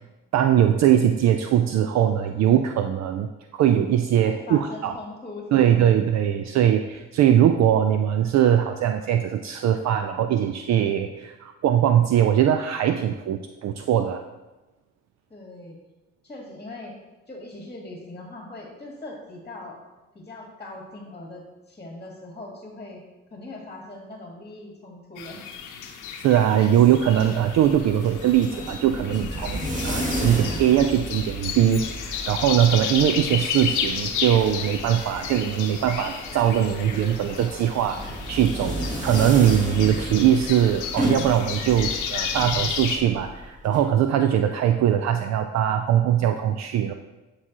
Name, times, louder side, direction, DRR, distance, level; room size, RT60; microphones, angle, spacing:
voice 1, 0.3-4.9 5.5-14.2 26.2-46.9, right 10 dB, 60° right, 6 dB, 0.4 m, -21 dB
voice 2, 4.2-6.0 15.3-15.8 16.2-16.9 17.3-19.8 20.1-23.0 23.3-25.5, left 2 dB, 20° left, -1 dB, 1.4 m, -40 dB
sound 1, 25.2-43.0, left 7 dB, 90° left, 0.8 m, -33 dB
sound 2, 27.0-43.8, right 1 dB, 25° right, 1.6 m, -33 dB
sound 3, 31.4-32.7, left 10 dB, 55° left, 0.6 m, -45 dB
9.5 x 4.8 x 2.9 m, 1.1 s
cardioid pair, 90°, 30 cm